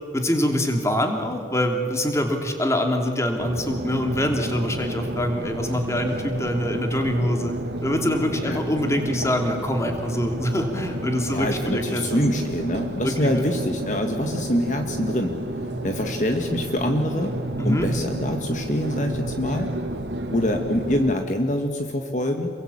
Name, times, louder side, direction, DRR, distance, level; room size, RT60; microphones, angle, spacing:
voice 1, 0.1-7.5 7.8-12.2 13.0-13.5 17.6-17.9, left 1 dB, 15° left, 4 dB, 2.8 m, -25 dB
sound 1, 3.4-21.1, right 1 dB, 85° right, 2.4 m, -31 dB
voice 2, 11.3-15.3 15.8-17.3 17.6-19.7 20.3-22.5, left 1 dB, 45° left, 4 dB, 1.6 m, -25 dB
28.0 x 22.5 x 8.7 m, 2.5 s
head